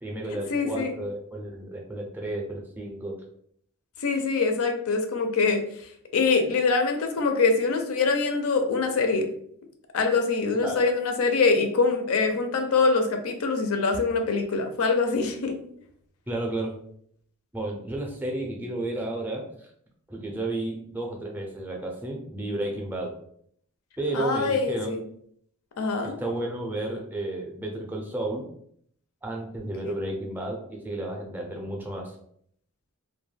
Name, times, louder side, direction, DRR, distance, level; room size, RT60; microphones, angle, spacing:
voice 1, 0.0-3.2 10.6-10.9 16.3-16.7 17.5-19.5 20.1-23.2 24.0-24.9 26.0-28.5 29.2-32.1, right 2 dB, 10° right, -1 dB, 0.4 m, -32 dB
voice 2, 0.5-0.9 4.0-5.6 6.1-9.3 9.9-15.6 24.1-25.0 25.8-26.2, left 4 dB, 70° left, 5 dB, 0.4 m, -24 dB
2.2 x 2.1 x 3.2 m, 0.66 s
head